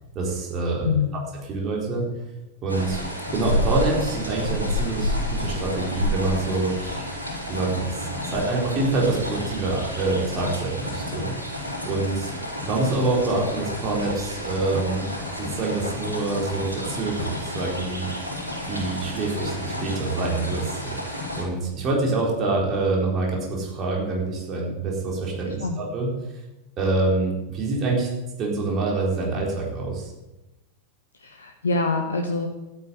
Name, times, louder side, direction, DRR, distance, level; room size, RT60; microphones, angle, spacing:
voice 1, 0.1-0.9 1.5-2.0 2.6-3.0 3.3-7.1 7.5-12.3 12.6-15.1 15.4-18.1 18.6-26.1 26.8-28.1 28.4-30.1, right 3 dB, 30° right, -2 dB, 4.2 m, -26 dB
voice 2, 0.8-1.2 25.5-25.8 31.2-32.5, left 4 dB, 70° left, 5 dB, 1.1 m, -25 dB
sound 1, 2.7-21.4, left 1 dB, 90° left, 4.9 m, -30 dB
12.0 x 9.3 x 7.9 m, 1.0 s
figure-of-eight pair, 90°, 0 cm